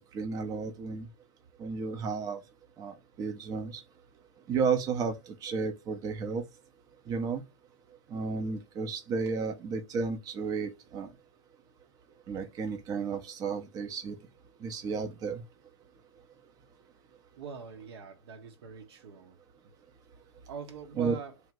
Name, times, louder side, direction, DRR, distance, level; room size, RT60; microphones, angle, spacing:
voice 1, 0.1-1.1 1.6-2.4 2.8-3.8 4.5-6.4 7.1-7.4 8.1-11.1 12.3-14.2 14.6-15.4 21.0-21.2, right 5 dB, 25° right, 0.6 m, -32 dB
voice 2, 17.4-19.4 20.4-21.3, right 6 dB, 60° right, 0.8 m, -43 dB
3.0 x 2.1 x 3.5 m
hypercardioid pair, 120°, 16 cm